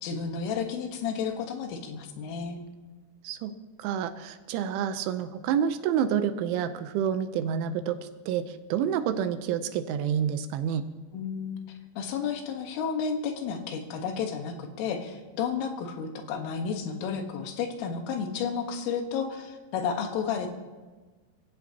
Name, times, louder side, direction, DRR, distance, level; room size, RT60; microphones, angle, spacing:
voice 1, 0.0-2.6 11.1-11.6 12.0-20.5, left 6 dB, 85° left, 4 dB, 4.0 m, -32 dB
voice 2, 3.8-8.0 8.3-8.4 8.7-10.8, right 8 dB, 80° right, 9 dB, 3.1 m, -28 dB
25.5 x 16.0 x 2.9 m, 1.3 s
omnidirectional pair, 5.7 m